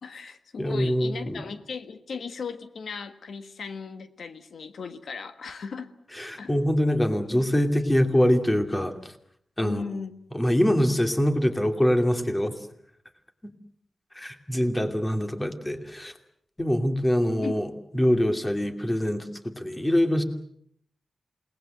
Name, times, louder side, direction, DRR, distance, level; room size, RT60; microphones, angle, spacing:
voice 1, 0.0-5.9 6.4-6.5 9.6-10.1 17.4-17.6, left 5 dB, 75° left, 9 dB, 1.4 m, -36 dB
voice 2, 0.6-1.4 6.1-9.1 9.6-9.8 10.3-12.6 13.4-13.5 14.1-16.1 16.6-17.7 17.9-20.2, equal, 15° left, 6 dB, 2.8 m, -24 dB
28.5 x 19.5 x 7.8 m, 0.68 s
wide cardioid pair, 110°, 0 cm